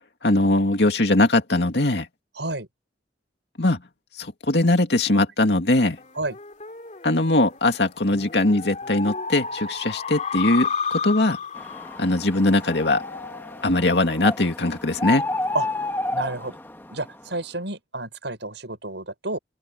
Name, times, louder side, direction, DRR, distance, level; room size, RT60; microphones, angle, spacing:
voice 1, 0.2-2.1 3.6-3.8 4.2-6.0 7.0-11.4 12.0-13.0 13.6-15.3, left 2 dB, 70° left, 2.5 m, -21 dB
voice 2, 2.4-2.7 6.1-6.4 15.5-15.7 16.1-16.6 16.9-19.4, right 2 dB, 80° right, 6.8 m, -30 dB
sound 1, 6.0-14.8, left 5 dB, 40° left, 2.8 m, -33 dB
sound 2, 11.6-17.1, left 2 dB, 10° left, 1.6 m, -31 dB
open air
head